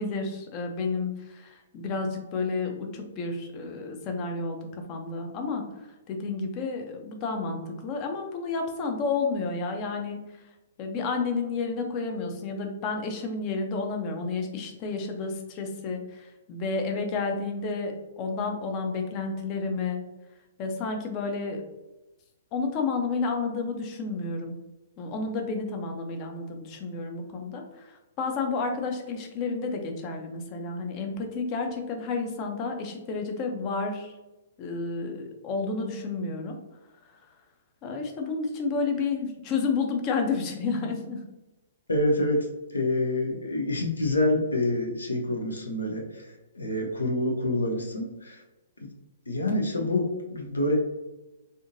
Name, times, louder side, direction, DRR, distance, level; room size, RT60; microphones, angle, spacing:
voice 1, 0.0-4.6 4.9-5.6 6.1-10.2 10.8-16.0 16.5-20.0 20.6-21.6 22.5-24.5 25.0-34.1 34.6-36.5 37.8-41.2, left 4 dB, 35° left, 4 dB, 0.6 m, -31 dB
voice 2, 41.9-46.3 46.5-48.4 49.3-50.8, left 1 dB, 80° left, 2 dB, 0.7 m, -27 dB
3.6 x 2.6 x 2.6 m, 1.0 s
figure-of-eight pair, 115°, 0 cm